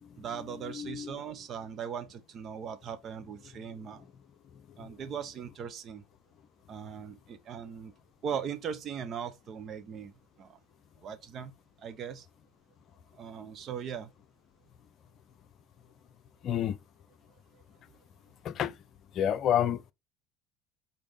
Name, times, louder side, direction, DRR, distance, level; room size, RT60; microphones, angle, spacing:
voice 1, 0.2-4.0 4.8-6.0 6.7-7.9 8.2-10.1 10.4-10.6 11.0-11.5 11.8-12.3 13.2-14.1 17.5-17.6, right 7 dB, 45° right, 1.0 m, -39 dB
voice 2, 0.7-1.2 4.8-4.9 16.4-16.8 18.4-18.7 19.1-19.8, left 10 dB, 50° left, 0.6 m, -29 dB
5.2 x 4.6 x 4.9 m
figure-of-eight pair, 65°, 0 cm